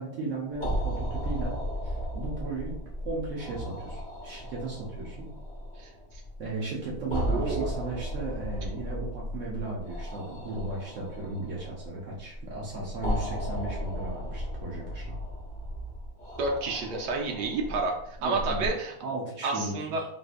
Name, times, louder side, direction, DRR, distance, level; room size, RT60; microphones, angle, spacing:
voice 1, 0.0-1.5 1.8-5.3 6.4-15.2 18.2-18.7 19.0-20.0, right 3 dB, 85° right, -4 dB, 0.6 m, -36 dB
sound 1, 0.5-18.7, equal, 10° left, 0.4 m, -35 dB
voice 2, 5.8-6.2 7.3-7.7 16.4-18.9 19.4-20.0, right 3 dB, 70° right, 1 dB, 1.0 m, -30 dB
3.7 x 2.5 x 2.4 m, 0.69 s
omnidirectional pair, 2.2 m